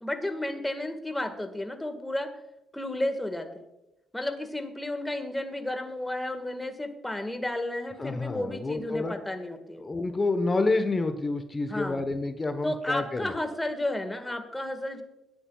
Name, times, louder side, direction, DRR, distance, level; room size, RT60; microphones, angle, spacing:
voice 1, 0.0-2.3 2.7-3.6 4.1-9.8 11.7-12.0 12.6-15.0, left 1 dB, 10° left, 7 dB, 1.6 m, -32 dB
voice 2, 8.0-9.1 9.8-13.3, left 3 dB, 25° left, 8 dB, 1.0 m, -28 dB
22.0 x 10.0 x 2.3 m, 0.95 s
cardioid pair, 90°, 0 cm